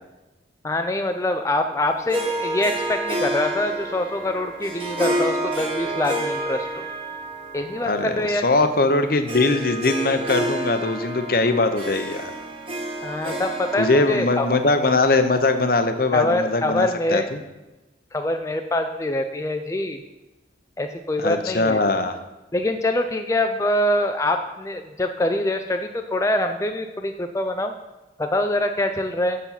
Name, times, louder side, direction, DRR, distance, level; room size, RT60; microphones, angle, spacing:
voice 1, 0.6-6.9 7.5-8.4 13.0-14.5 16.1-17.3 18.1-20.0 20.8-21.8 22.5-27.7 28.2-29.4, left 1 dB, 15° left, 5 dB, 0.4 m, -24 dB
Harp, 2.1-15.7, right 1 dB, 30° right, 1.6 m, -30 dB
voice 2, 7.8-12.4 13.8-17.4 21.2-22.1, left 2 dB, 50° left, 8 dB, 0.8 m, -21 dB
7.3 x 7.0 x 5.7 m, 1.1 s
head